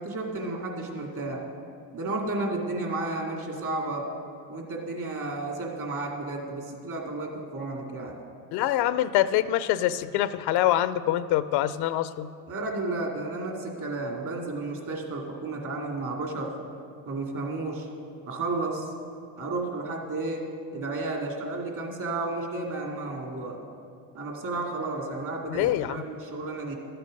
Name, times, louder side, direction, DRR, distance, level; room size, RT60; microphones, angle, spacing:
voice 1, 0.0-1.4 1.9-4.1 4.5-8.2 12.5-16.5 17.1-17.9 18.2-18.9 19.4-20.5 20.7-23.6 24.1-26.8, right 2 dB, 50° right, 0 dB, 2.5 m, -32 dB
voice 2, 8.5-12.3 25.5-26.0, left 13 dB, 80° left, 14 dB, 0.5 m, -25 dB
13.0 x 7.8 x 5.2 m, 2.4 s
supercardioid pair, 80°, 39 cm